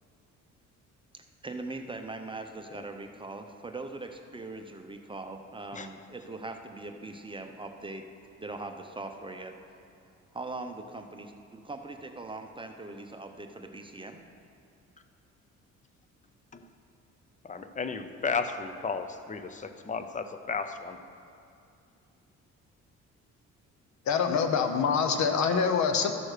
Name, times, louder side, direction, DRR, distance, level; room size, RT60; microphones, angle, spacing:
voice 1, 1.1-8.1 8.4-9.6 10.3-14.2, right 2 dB, 15° right, 5 dB, 0.7 m, -41 dB
voice 2, 17.4-21.0, left 5 dB, 25° left, 9 dB, 0.7 m, -34 dB
voice 3, 24.1-26.1, left 6 dB, 65° left, 7 dB, 0.9 m, -25 dB
13.5 x 6.2 x 5.0 m, 2.6 s
cardioid pair, 90°, 30 cm